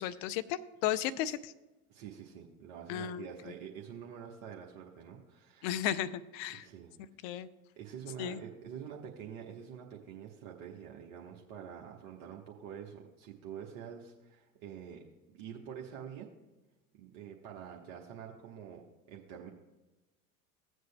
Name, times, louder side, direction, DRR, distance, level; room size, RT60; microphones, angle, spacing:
voice 1, 0.0-1.5 2.9-3.3 5.6-6.7 7.2-7.5 8.2-8.4, left 11 dB, 50° left, 13 dB, 0.6 m, -34 dB
voice 2, 1.9-5.8 6.5-6.9 7.8-15.0 15.3-16.3 16.9-18.8 19.1-19.5, right 8 dB, 50° right, -1 dB, 1.2 m, -47 dB
16.0 x 7.9 x 2.2 m, 1.1 s
figure-of-eight pair, 75°, 45 cm